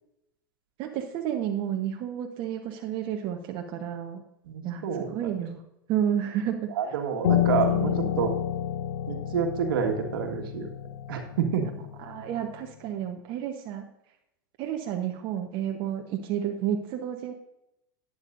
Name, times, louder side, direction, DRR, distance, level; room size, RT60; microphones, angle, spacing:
voice 1, 0.8-4.2 4.6-5.6 5.9-6.7 7.6-8.1 11.6-11.7 12.0-13.8 14.6-17.3, right 9 dB, 45° right, 2 dB, 1.1 m, -31 dB
voice 2, 4.5-5.3 6.8-8.3 9.1-10.7 11.1-11.6, right 7 dB, 75° right, 4 dB, 1.7 m, -28 dB
Piano, 7.2-12.5, left 11 dB, 80° left, 0.6 m, -29 dB
11.5 x 9.7 x 2.6 m, 0.86 s
hypercardioid pair, 100°, 12 cm